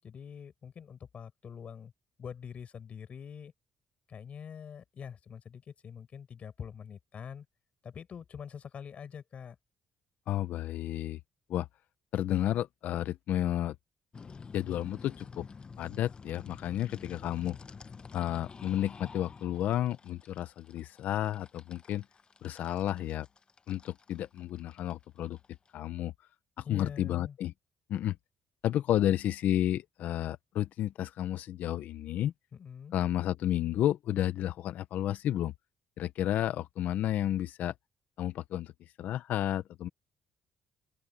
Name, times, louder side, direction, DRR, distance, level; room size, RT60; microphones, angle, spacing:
voice 1, 0.0-1.9 2.2-3.5 4.1-7.5 7.8-9.6 26.6-27.4 32.5-33.0, left 7 dB, 50° left, 7.3 m, -45 dB
voice 2, 10.3-11.2 11.5-11.7 12.1-13.7 14.5-15.4 15.8-17.6 18.1-22.0 22.4-23.3 23.7-25.4 25.7-26.1 26.6-27.5 27.9-28.2 28.6-32.3 32.9-35.5 36.0-37.7 38.2-38.7 39.0-39.9, left 12 dB, 75° left, 0.9 m, -31 dB
sound 1, 14.1-25.7, left 5 dB, 35° left, 1.1 m, -49 dB
open air
cardioid pair, 90°, 3 cm